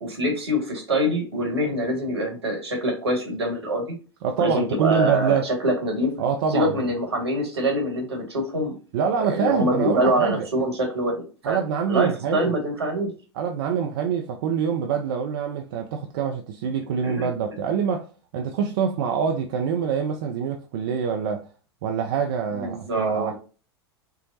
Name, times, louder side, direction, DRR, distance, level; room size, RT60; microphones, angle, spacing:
voice 1, 0.0-3.8 4.4-6.1 6.5-8.7 9.2-11.6 11.9-13.1 17.0-17.3 22.5-23.3, right 1 dB, 75° right, 1.3 m, -24 dB
voice 2, 4.2-5.5 6.2-6.7 8.9-10.5 11.4-12.6 13.3-21.5 21.8-23.4, right 7 dB, 55° right, 0.4 m, -25 dB
4.5 x 2.0 x 2.7 m
figure-of-eight pair, 85°, 14 cm